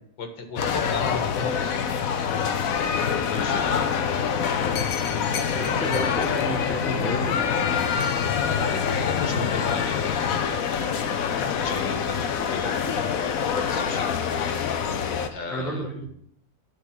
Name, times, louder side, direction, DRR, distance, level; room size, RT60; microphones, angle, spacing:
voice 1, 0.2-2.1 2.8-4.4 8.3-10.8 11.3-12.9 13.5-14.1 15.3-16.1, left 4 dB, 90° left, 4 dB, 2.1 m, -35 dB
sound 1, 0.6-15.3, left 7 dB, 60° left, 1.1 m, -25 dB
voice 2, 5.5-7.4 15.5-16.1, equal, ahead, -3 dB, 1.3 m, -31 dB
10.0 x 5.6 x 5.6 m, 0.67 s
omnidirectional pair, 1.9 m